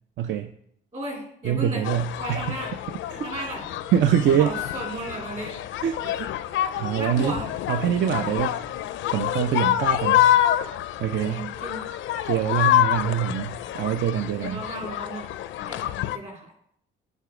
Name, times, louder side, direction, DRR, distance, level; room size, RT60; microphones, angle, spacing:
voice 1, 0.2-0.5 1.4-2.6 3.1-3.5 3.9-4.5 5.8-6.3 6.7-7.3 7.7-8.6 9.1-10.3 11.0-11.4 12.2-14.6, right 9 dB, 65° right, 8 dB, 0.5 m, -24 dB
voice 2, 0.9-1.9 2.2-2.7 3.2-3.6 4.4-5.6 6.0-6.2 7.0-7.5 11.2-11.8 14.2-15.3 15.7-16.5, right 1 dB, 30° right, 0 dB, 2.5 m, -35 dB
sound 1, 1.8-16.2, left 12 dB, 75° left, 0.4 m, -27 dB
8.1 x 4.1 x 4.8 m, 0.69 s
cardioid pair, 90°, 20 cm